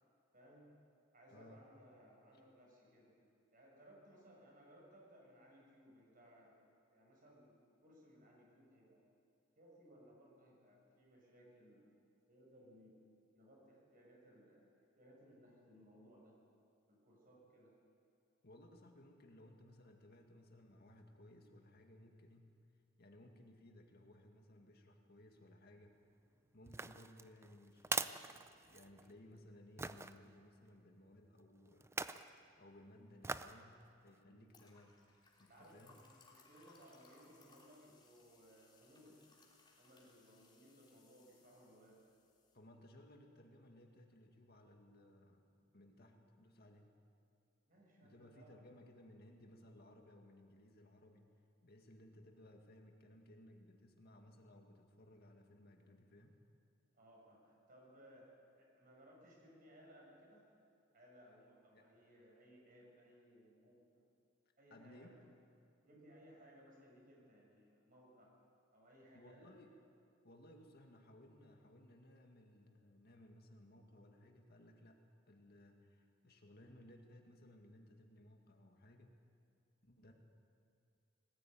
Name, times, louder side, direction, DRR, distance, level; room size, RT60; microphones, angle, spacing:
voice 1, 0.3-0.7 1.1-3.2 3.5-6.6 6.9-9.0 9.6-12.0 12.3-13.0 13.3-16.4 16.9-17.7 28.9-29.2 34.2-34.5 35.4-39.2 39.8-42.0 45.6-46.1 47.6-48.9 56.9-58.3 58.6-60.5 60.9-64.0 64.6-65.2 65.9-68.3 68.7-69.6 80.0-80.1, equal, 45° right, -2 dB, 6.7 m, -63 dB
voice 2, 1.3-1.6 18.4-22.6 23.0-26.0 26.5-32.0 32.3-35.0 35.4-36.0 42.5-45.4 45.7-46.9 48.0-51.3 51.6-56.4 61.7-62.0 64.7-65.2 69.1-69.8 70.2-79.2 79.8-80.1, left 1 dB, 55° left, 3 dB, 2.0 m, -61 dB
sound 1, 26.7-29.1 29.8-30.1 31.8-32.3 33.2-33.6 34.1-34.2, right 4 dB, 15° right, 0.5 m, -42 dB
sound 2, 34.5-42.6, left 4 dB, 25° left, 3.2 m, -68 dB
20.0 x 15.0 x 9.0 m, 2.4 s
head